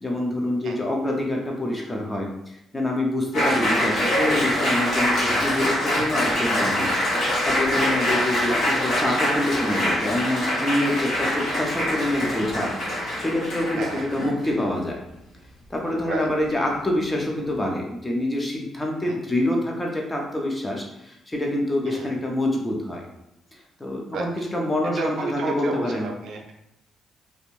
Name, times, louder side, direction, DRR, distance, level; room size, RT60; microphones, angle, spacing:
voice 1, 0.0-2.3 2.7-6.9 7.4-12.8 13.2-15.0 15.7-23.0 23.5-26.1, left 1 dB, 15° left, 0 dB, 0.6 m, -26 dB
Applause, 3.3-14.7, left 1 dB, 80° left, 1.2 m, -24 dB
voice 2, 24.9-26.5, right 3 dB, 75° right, 1 dB, 0.4 m, -31 dB
2.5 x 2.1 x 3.1 m, 0.83 s
cardioid pair, 90°, 0 cm